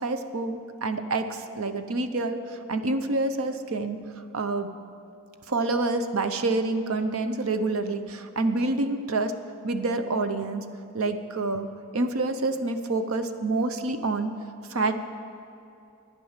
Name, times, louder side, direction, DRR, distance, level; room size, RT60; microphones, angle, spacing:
voice 1, 0.0-4.0 4.3-4.7 5.5-10.7 10.9-14.4 14.7-14.9, right 2 dB, 75° right, 9 dB, 0.7 m, -27 dB
11.5 x 9.9 x 7.3 m, 2.7 s
head